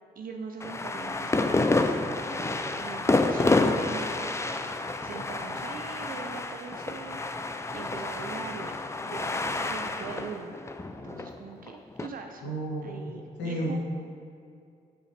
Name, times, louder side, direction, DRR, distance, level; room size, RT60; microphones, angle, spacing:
voice 1, 0.2-7.2 7.7-10.5 11.0-12.4 12.8-13.8, right 5 dB, 45° right, 3 dB, 0.5 m, -41 dB
sound 1, 0.6-12.1, left 2 dB, 15° left, 0.4 m, -29 dB
voice 2, 12.4-13.8, right 1 dB, 75° left, -3 dB, 1.1 m, -33 dB
6.2 x 5.1 x 3.2 m, 2.4 s
hypercardioid pair, 40°, 20 cm